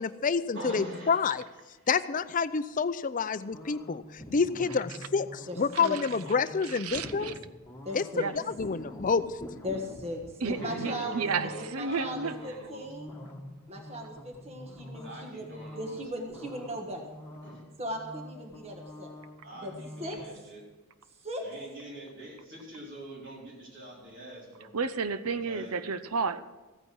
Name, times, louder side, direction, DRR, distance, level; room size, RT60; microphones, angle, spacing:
voice 1, 0.0-1.4 1.9-7.3 7.9-8.0 8.3-9.3, left 5 dB, 35° left, 14 dB, 0.5 m, -28 dB
voice 2, 0.5-1.1 10.6-12.9 15.0-16.0 17.4-17.6 19.4-19.7 20.0-20.6 21.4-24.7 25.4-25.7, right 1 dB, 55° right, -3 dB, 4.0 m, -43 dB
sound 1, 3.5-20.3, left 1 dB, 10° left, 1.6 m, -46 dB
voice 3, 5.5-6.0 7.8-8.3 9.6-11.3 11.6-13.1 13.7-17.1 17.8-19.1 19.5-20.2 21.2-21.4, equal, 30° right, 2 dB, 1.5 m, -38 dB
voice 4, 6.7-7.3 8.2-8.3 10.4-12.3 24.7-26.4, right 5 dB, 80° right, 13 dB, 0.7 m, -32 dB
15.0 x 9.1 x 6.2 m, 1.2 s
head